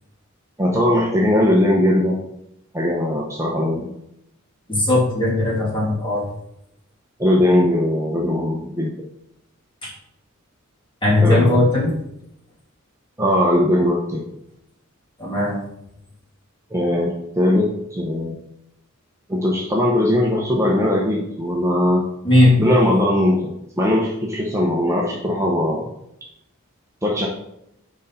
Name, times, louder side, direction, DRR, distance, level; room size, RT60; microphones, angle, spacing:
voice 1, 0.6-2.2 2.7-3.9 7.2-8.9 11.2-11.7 13.2-14.2 16.7-18.4 19.3-22.0 22.6-25.9 27.0-27.3, left 1 dB, 15° right, -3 dB, 0.9 m, -19 dB
voice 2, 4.7-6.3 9.8-9.9 11.0-11.9 15.2-15.6 22.2-22.6, left 1 dB, 25° left, -5 dB, 2.7 m, -17 dB
6.4 x 5.1 x 4.3 m, 0.79 s
head